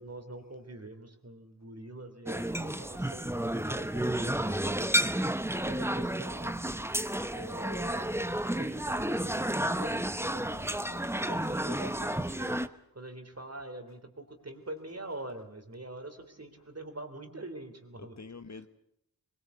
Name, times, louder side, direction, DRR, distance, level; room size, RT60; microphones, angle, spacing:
voice 1, 0.0-5.0 5.6-6.6 7.3-12.6 12.9-18.1, right 1 dB, 40° right, 3.3 m, -45 dB
sound 1, 2.3-12.7, right 1 dB, 5° right, 0.9 m, -31 dB
voice 2, 18.0-18.7, left 4 dB, 50° left, 1.2 m, -48 dB
22.0 x 21.5 x 8.2 m
wide cardioid pair, 70°, 37 cm